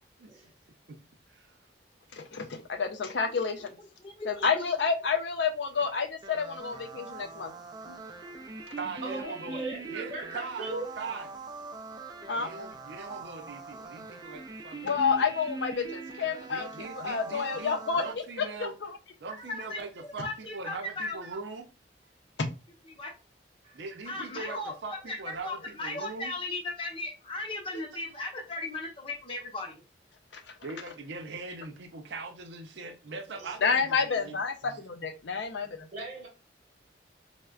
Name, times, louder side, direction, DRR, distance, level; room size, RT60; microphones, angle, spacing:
voice 1, 0.2-0.5 0.9-1.0 1.3-1.6 8.8-9.6 9.9-11.3 12.4-15.2 16.5-18.7 19.2-21.7 23.7-26.3 27.7-27.9 30.6-34.4 34.6-34.8, right 4 dB, 70° right, 0.6 m, -41 dB
voice 2, 2.1-3.7 4.3-7.5 12.3-12.5 14.8-18.0 18.4-19.0 22.4-22.5 33.6-34.5 34.9-35.9, left 5 dB, 70° left, 0.5 m, -29 dB
voice 3, 4.0-4.6 7.8-8.0 9.6-9.7 19.5-21.2 23.0-23.1 24.1-29.8, left 2 dB, 30° left, 0.7 m, -37 dB
sound 1, 6.2-18.1, right 3 dB, 25° right, 0.3 m, -42 dB
voice 4, 9.0-10.9 23.6-23.8 33.3-33.5 35.9-36.3, right 2 dB, 40° right, 0.8 m, -38 dB
4.2 x 2.1 x 2.3 m
head